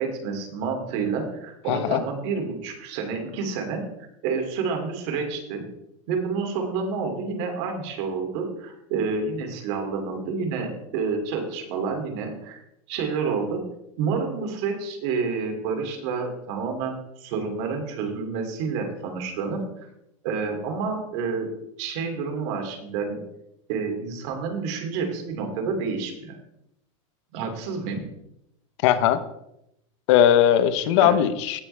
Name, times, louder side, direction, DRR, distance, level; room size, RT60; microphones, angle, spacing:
voice 1, 0.0-3.8 4.2-5.7 6.1-12.6 12.9-13.6 14.0-19.6 20.2-21.5 21.8-23.2 23.7-26.4 27.3-28.1 31.0-31.2, right 5 dB, 55° right, 3 dB, 2.7 m, -29 dB
voice 2, 1.7-2.0 28.8-29.2 30.1-31.6, left 10 dB, 60° left, 12 dB, 0.9 m, -19 dB
17.0 x 6.2 x 3.4 m, 0.81 s
supercardioid pair, 145°, 17 cm